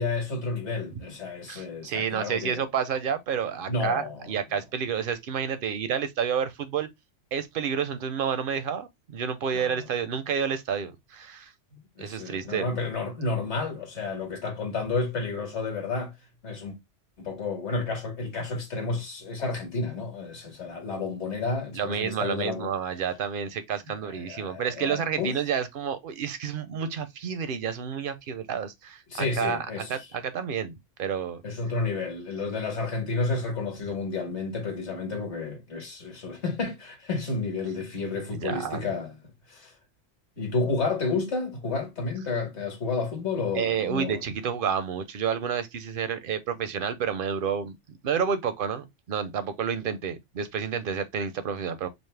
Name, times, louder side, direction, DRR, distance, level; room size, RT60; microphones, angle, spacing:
voice 1, 0.0-2.6 3.7-4.3 9.5-9.8 12.0-16.1 16.4-16.8 17.2-22.7 24.0-25.3 29.1-30.0 31.4-39.1 39.5-39.7 40.4-44.2, left 3 dB, 65° left, 1.7 m, -31 dB
voice 2, 1.5-6.9 7.3-11.5 12.0-12.7 21.7-31.4 38.4-39.0 43.5-47.8 48.0-51.9, right 7 dB, 60° right, 0.6 m, -30 dB
5.1 x 2.1 x 3.2 m
omnidirectional pair, 1.3 m